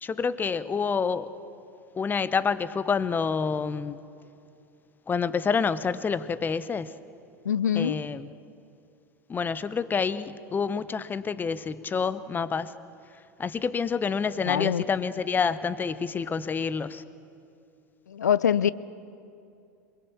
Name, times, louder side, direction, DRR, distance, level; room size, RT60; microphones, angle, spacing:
voice 1, 0.0-1.3 1.9-4.0 5.1-6.9 7.7-8.3 9.3-12.7 13.4-17.0, left 5 dB, 20° left, 15 dB, 0.9 m, -28 dB
voice 2, 7.5-8.0 14.5-14.8 18.1-18.7, left 9 dB, 75° left, 19 dB, 0.6 m, -24 dB
27.5 x 21.0 x 7.0 m, 2.5 s
figure-of-eight pair, 80°, 9 cm